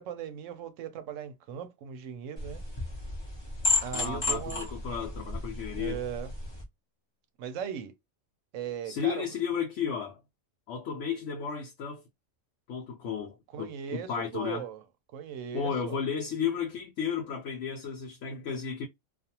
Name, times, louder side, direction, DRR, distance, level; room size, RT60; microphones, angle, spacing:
voice 1, 0.0-2.6 3.8-4.7 5.7-6.3 7.4-7.9 8.5-9.3 13.5-14.8 15.1-16.0, right 9 dB, 70° right, 0.9 m, -38 dB
sound 1, 2.4-6.6, left 3 dB, 30° left, 0.5 m, -32 dB
voice 2, 3.9-6.0 8.8-10.2 10.7-12.0 12.7-14.6 15.5-18.9, left 7 dB, 65° left, 0.8 m, -33 dB
2.4 x 2.3 x 2.8 m
omnidirectional pair, 1.4 m